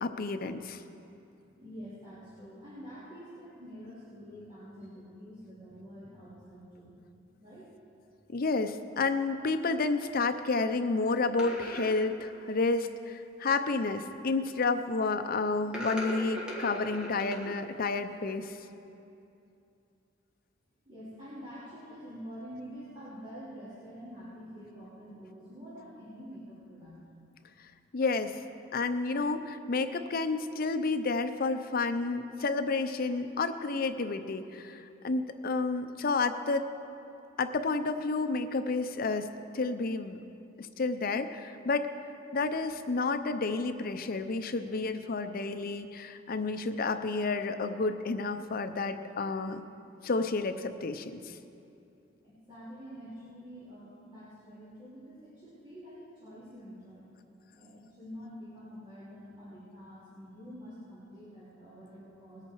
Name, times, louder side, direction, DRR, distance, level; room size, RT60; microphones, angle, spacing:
voice 1, 0.0-0.8 8.3-18.5 27.9-28.4 28.7-36.7 37.4-40.2 40.6-41.9 42.3-49.6 50.0-51.3, left 3 dB, 50° left, 9 dB, 0.6 m, -30 dB
voice 2, 1.5-7.0 7.4-7.7 20.8-27.1 52.2-57.1 57.5-62.4, equal, 30° right, -11 dB, 3.4 m, -47 dB
sound 1, 11.4-12.0 13.9-14.3 15.7-17.6 17.9-18.2, left 1 dB, 5° right, 1.7 m, -39 dB
20.5 x 8.7 x 4.7 m, 2.6 s
head